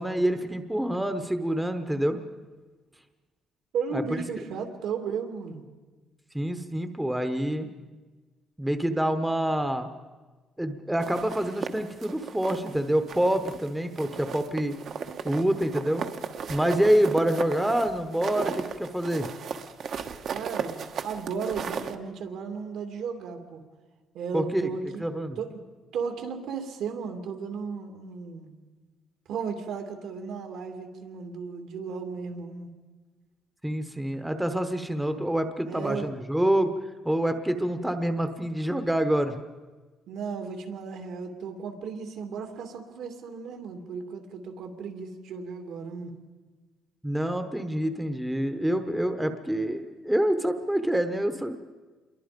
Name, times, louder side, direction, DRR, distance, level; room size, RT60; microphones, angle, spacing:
voice 1, 0.0-2.2 3.9-4.2 6.3-7.7 8.6-9.9 10.6-14.8 15.2-16.1 16.5-19.3 24.3-24.7 25.0-25.4 33.6-36.7 37.0-39.4 47.0-51.6, right 1 dB, 5° right, 8 dB, 1.0 m, -26 dB
voice 2, 3.7-5.6 20.3-23.6 24.1-25.0 25.4-25.6 25.9-28.5 29.3-32.7 35.6-36.1 40.1-46.1, right 5 dB, 75° right, 5 dB, 2.7 m, -35 dB
sound 1, 11.0-12.8 13.1-13.7 14.0-22.0, right 6 dB, 50° right, 1.2 m, -36 dB
28.0 x 22.5 x 5.2 m, 1.3 s
cardioid pair, 150°, 0 cm